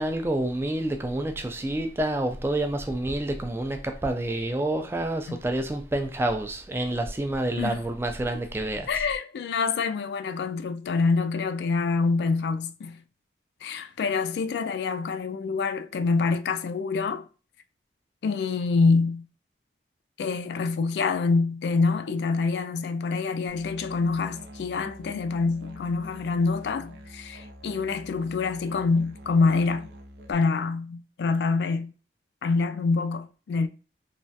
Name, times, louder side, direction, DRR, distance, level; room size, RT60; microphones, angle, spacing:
voice 1, 0.0-8.9, right 1 dB, 15° right, 0.3 m, -28 dB
voice 2, 8.9-13.0 13.6-17.3 18.2-19.3 20.2-29.9 30.3-31.9 32.4-33.7, left 4 dB, 75° left, 0.3 m, -26 dB
Musical instrument, 23.5-30.3, equal, 75° right, 0.5 m, -47 dB
3.2 x 2.3 x 2.7 m
head